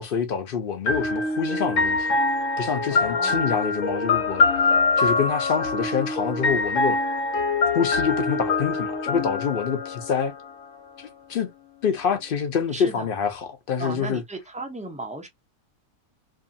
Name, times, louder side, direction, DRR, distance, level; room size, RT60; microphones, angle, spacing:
voice 1, 0.0-2.2 2.6-4.4 5.0-7.0 7.7-10.3 11.0-11.5 11.8-14.2, left 6 dB, 55° left, 0.7 m, -26 dB
sound 1, 0.9-10.7, left 3 dB, 80° left, 1.1 m, -24 dB
voice 2, 2.9-3.5 12.7-13.0 13.8-15.3, right 2 dB, 10° right, 0.3 m, -35 dB
2.7 x 2.4 x 2.6 m
omnidirectional pair, 1.3 m